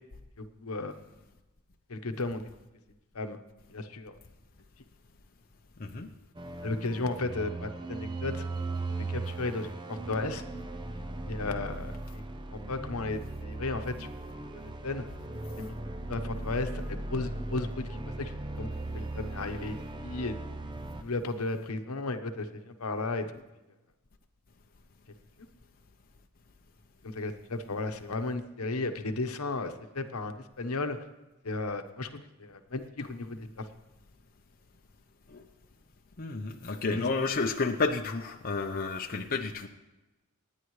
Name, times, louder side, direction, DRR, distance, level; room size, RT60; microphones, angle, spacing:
voice 1, 0.4-1.0 1.9-2.5 3.1-3.4 3.7-4.1 6.6-8.4 9.0-10.4 11.3-12.2 12.5-14.1 14.8-15.0 15.6-15.7 16.1-18.3 18.6-20.4 21.0-23.4 27.0-31.0 31.4-33.7 36.9-37.1, left 3 dB, 70° left, 7 dB, 1.0 m, -34 dB
sound 1, 6.3-21.0, right 2 dB, 20° right, 0.7 m, -38 dB
voice 2, 36.2-39.7, left 4 dB, 40° left, 3 dB, 0.7 m, -31 dB
26.5 x 9.7 x 3.2 m, 1.1 s
head